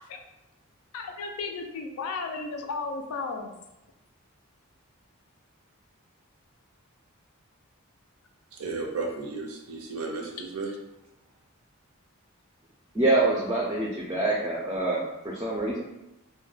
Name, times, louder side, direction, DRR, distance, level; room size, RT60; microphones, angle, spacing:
voice 1, 0.9-3.6, left 4 dB, 90° left, 4 dB, 0.4 m, -34 dB
voice 2, 8.5-10.7, right 3 dB, 85° right, 2 dB, 0.5 m, -34 dB
voice 3, 12.9-15.8, right 2 dB, 15° right, -4 dB, 0.3 m, -26 dB
2.2 x 2.1 x 3.1 m, 0.92 s
head